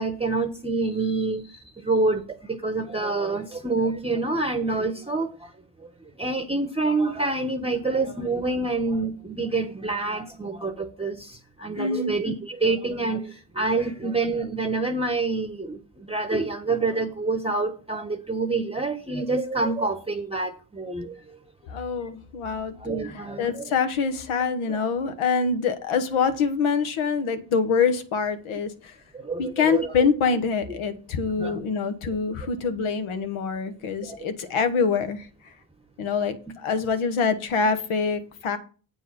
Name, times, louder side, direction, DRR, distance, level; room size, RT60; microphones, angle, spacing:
voice 1, 0.0-1.4 1.8-5.5 6.2-21.1 22.8-23.7 24.7-24.8 29.2-30.0 31.4-31.6 34.0-34.3, right 3 dB, 10° right, 7 dB, 0.9 m, -27 dB
voice 2, 11.8-12.2 21.6-22.8 23.1-29.0 29.4-35.3 36.0-38.6, left 5 dB, 80° left, 10 dB, 1.3 m, -25 dB
8.1 x 4.6 x 5.8 m, 0.38 s
cardioid pair, 75°, 49 cm